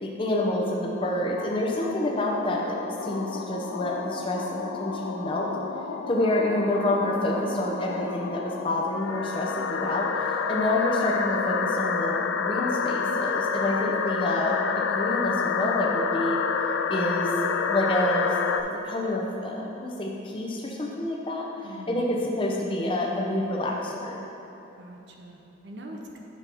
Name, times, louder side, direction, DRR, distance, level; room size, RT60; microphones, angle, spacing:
voice 1, 0.0-5.5 6.1-14.6 14.9-16.4 16.9-17.3 17.6-18.3 18.8-21.5 21.9-24.2, left 1 dB, 25° left, -2 dB, 0.7 m, -28 dB
sound 1, 1.0-18.6, left 5 dB, 90° left, 0.3 m, -29 dB
voice 2, 6.2-6.7 21.6-22.2 24.8-26.2, equal, 65° right, 1 dB, 0.7 m, -43 dB
6.1 x 4.4 x 5.3 m, 3.0 s
head